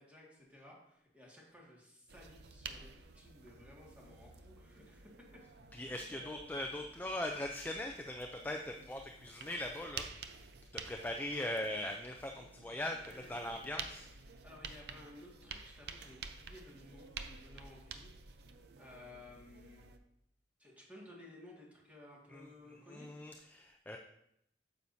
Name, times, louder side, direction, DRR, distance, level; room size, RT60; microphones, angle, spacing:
voice 1, 0.0-5.1 6.1-6.5 12.9-13.4 14.4-18.5 18.8-19.9 20.6-23.1, left 1 dB, 10° right, -3 dB, 1.8 m, -56 dB
sound 1, 2.1-20.0, right 5 dB, 65° right, 0.5 m, -51 dB
voice 2, 5.7-10.5 10.7-14.1 22.3-22.5 22.9-24.0, left 1 dB, 10° left, 2 dB, 0.4 m, -40 dB
9.2 x 7.0 x 2.7 m, 0.77 s
head